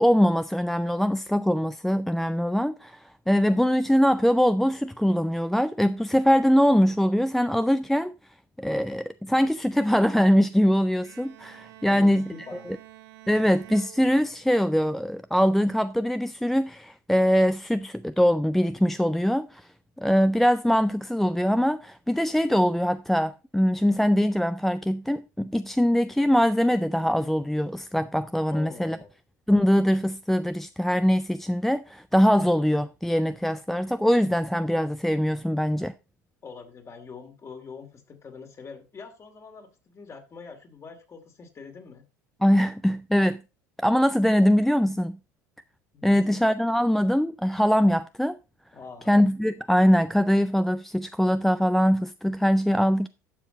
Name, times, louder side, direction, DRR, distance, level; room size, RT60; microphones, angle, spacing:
voice 1, 0.0-8.1 8.6-12.3 12.7-12.8 13.3-19.7 20.0-29.0 29.5-35.9 42.4-43.4 43.8-45.2 46.0-48.3 49.1-53.1, equal, ahead, 0.4 m, -22 dB
Bowed string instrument, 11.0-14.7, right 14 dB, 65° right, 1.7 m, -49 dB
voice 2, 11.9-12.7 28.5-29.1 36.4-42.0 45.9-46.4 48.7-49.1, left 5 dB, 30° left, 2.5 m, -44 dB
12.0 x 7.2 x 3.9 m
figure-of-eight pair, 70°, 10 cm